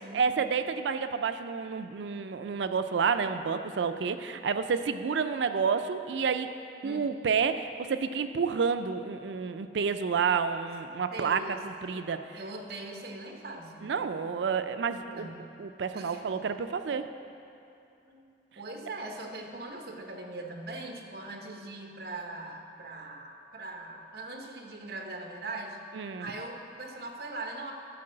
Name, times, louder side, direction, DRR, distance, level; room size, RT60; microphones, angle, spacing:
voice 1, 0.1-6.5 6.8-12.4 13.8-15.3 15.6-17.1 25.9-26.3, right 6 dB, 80° right, 9 dB, 0.4 m, -30 dB
voice 2, 11.1-11.6 11.9-13.9 15.1-15.5 15.9-16.5 18.0-18.2 18.6-25.8 26.2-27.7, right 2 dB, 60° right, 2 dB, 1.0 m, -41 dB
12.5 x 4.6 x 7.6 m, 2.7 s
head